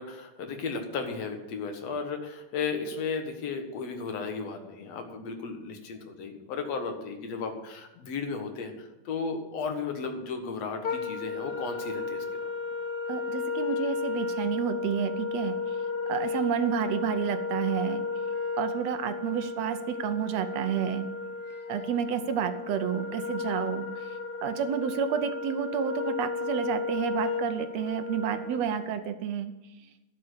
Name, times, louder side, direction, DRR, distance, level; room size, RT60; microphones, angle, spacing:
voice 1, 0.0-12.4, left 5 dB, 60° left, 5 dB, 2.5 m, -34 dB
Wind instrument woodwind instrument, 10.8-28.9, left 4 dB, 80° left, 0.8 m, -34 dB
voice 2, 13.1-15.8 16.1-18.0 18.6-21.1 21.7-29.5, right 8 dB, 70° right, 9 dB, 1.7 m, -30 dB
12.0 x 6.9 x 8.0 m, 1.0 s
omnidirectional pair, 3.6 m